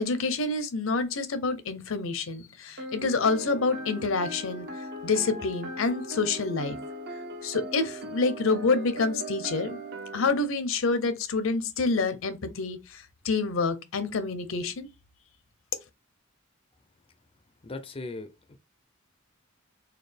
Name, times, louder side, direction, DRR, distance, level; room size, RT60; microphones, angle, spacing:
voice 1, 0.0-4.7 5.0-6.8 7.4-9.8 10.1-14.9, left 4 dB, 75° left, 0.7 m, -27 dB
sound 1, 2.8-10.4, right 1 dB, 55° right, 0.9 m, -39 dB
voice 2, 17.6-18.6, left 2 dB, 25° left, 0.4 m, -38 dB
4.1 x 2.3 x 3.3 m
head